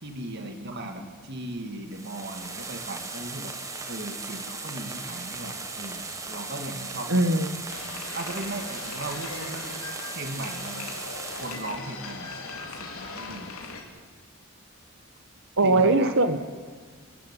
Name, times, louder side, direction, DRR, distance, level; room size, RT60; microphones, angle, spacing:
voice 1, 0.0-3.5 3.9-7.8 8.1-9.7 10.1-10.9 11.4-12.3 12.7-13.6 15.6-16.1, right 2 dB, 50° right, 5 dB, 2.2 m, -37 dB
sound 1, 1.9-11.8, right 3 dB, 15° right, 1.7 m, -37 dB
voice 2, 7.1-7.5 15.6-16.4, right 2 dB, 75° right, 10 dB, 1.5 m, -20 dB
sound 2, 7.7-13.8, left 3 dB, 80° left, 3.7 m, -39 dB
29.5 x 14.0 x 9.8 m, 1.5 s
head